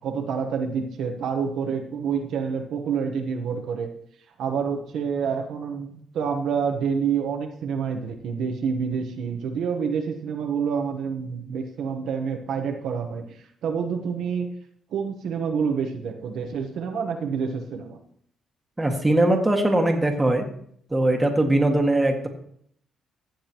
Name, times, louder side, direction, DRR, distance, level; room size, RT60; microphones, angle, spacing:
voice 1, 0.0-3.9 4.4-13.3 13.6-14.5 14.9-18.0, right 6 dB, 75° right, 3 dB, 1.1 m, -28 dB
voice 2, 18.8-20.5 20.9-22.3, right 1 dB, 15° right, 2 dB, 1.8 m, -21 dB
15.5 x 7.3 x 3.0 m, 0.65 s
cardioid pair, 90°, 0 cm